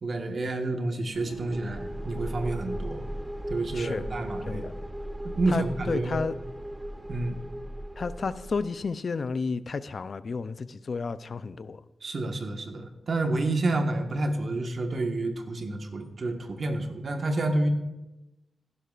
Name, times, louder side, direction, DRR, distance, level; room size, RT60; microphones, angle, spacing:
voice 1, 0.0-3.1 3.5-4.7 5.2-6.3 7.1-7.4 12.0-17.7, right 2 dB, 65° right, 5 dB, 1.4 m, -29 dB
sound 1, 1.1-8.9, equal, 15° right, 0.7 m, -37 dB
voice 2, 3.7-4.0 4.5-4.7 5.5-6.3 8.0-11.8, left 4 dB, 60° left, 14 dB, 0.5 m, -32 dB
16.5 x 11.0 x 2.5 m, 0.99 s
cardioid pair, 55°, 0 cm